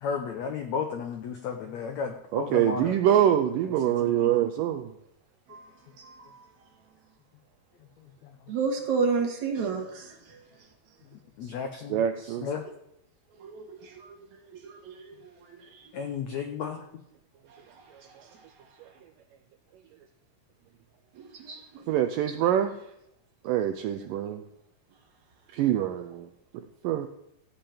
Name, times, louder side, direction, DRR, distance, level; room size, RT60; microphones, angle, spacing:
voice 1, 0.0-3.0 3.7-4.3 8.0-8.3 11.4-12.6 15.9-16.9, left 6 dB, 80° left, 5 dB, 1.6 m, -34 dB
voice 2, 2.3-4.9 11.4-11.5 11.9-12.5 21.9-22.8 23.4-24.4 25.5-26.3 26.5-27.1, right 11 dB, 85° right, 8 dB, 2.0 m, -25 dB
voice 3, 4.0-4.4 5.5-5.7 6.0-6.4 8.5-10.4 13.4-14.1 14.5-15.1 15.5-15.9 17.5-17.8 21.2-22.0, right 5 dB, 55° right, 2 dB, 2.9 m, -32 dB
15.0 x 5.4 x 8.7 m, 0.80 s
omnidirectional pair, 4.5 m